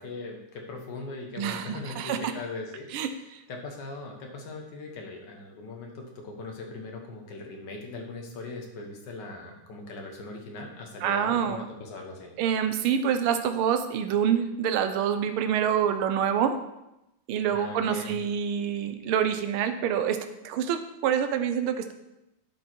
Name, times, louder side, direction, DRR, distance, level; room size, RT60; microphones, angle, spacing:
voice 1, 0.0-3.1 3.5-12.4 17.5-18.2, left 3 dB, 55° left, 2 dB, 1.8 m, -40 dB
voice 2, 1.4-2.4 2.9-3.4 11.0-11.7 12.4-16.6 17.3-20.2 20.4-21.9, right 8 dB, 80° right, 8 dB, 1.6 m, -26 dB
11.5 x 4.7 x 4.5 m, 0.90 s
omnidirectional pair, 2.4 m